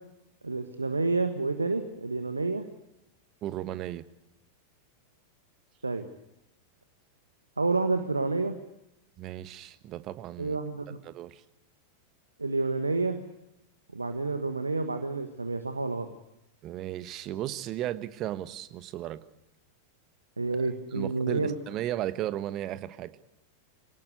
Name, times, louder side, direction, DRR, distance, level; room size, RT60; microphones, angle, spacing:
voice 1, 0.4-2.7 5.8-6.0 7.6-8.6 10.4-11.0 12.4-13.2 13.9-16.1 20.4-21.5, right 3 dB, 80° right, 8 dB, 1.5 m, -29 dB
voice 2, 3.4-4.0 9.2-10.6 11.0-11.4 16.6-19.2 20.9-23.1, right 13 dB, 35° right, 13 dB, 1.3 m, -35 dB
26.5 x 18.5 x 8.2 m, 0.90 s
figure-of-eight pair, 90°, 0 cm